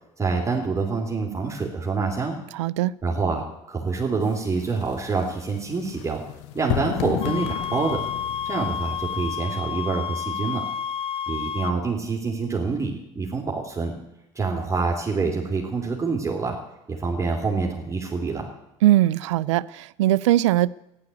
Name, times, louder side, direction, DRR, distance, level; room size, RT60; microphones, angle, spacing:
voice 1, 0.2-2.4 3.0-6.2 6.5-8.0 8.4-10.6 11.3-13.9 14.3-16.6 16.9-18.5, right 4 dB, 20° right, -1 dB, 3.2 m, -26 dB
voice 2, 2.5-2.9 18.8-20.7, right 15 dB, 80° right, 22 dB, 0.5 m, -20 dB
sound 1, 4.2-9.3, left 14 dB, 70° left, 0.7 m, -33 dB
sound 2, 7.2-11.8, left 8 dB, 40° left, 1.0 m, -30 dB
14.5 x 11.0 x 8.4 m, 0.89 s
hypercardioid pair, 65°, 15 cm